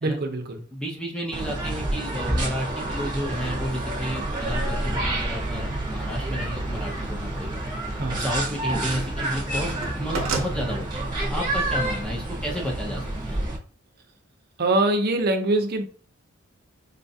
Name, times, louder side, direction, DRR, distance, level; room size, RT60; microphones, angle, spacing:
voice 1, 0.0-0.6 8.0-8.2 14.6-15.8, right 2 dB, 50° right, 4 dB, 0.6 m, -23 dB
voice 2, 0.7-7.6 8.2-13.4, equal, 5° left, -2 dB, 0.6 m, -32 dB
sound 1, 1.3-13.6, right 1 dB, 20° right, 0.9 m, -28 dB
sound 2, 8.0-9.0 9.3-10.5, right 4 dB, 85° right, 0.7 m, -32 dB
3.9 x 2.3 x 2.7 m, 0.40 s
head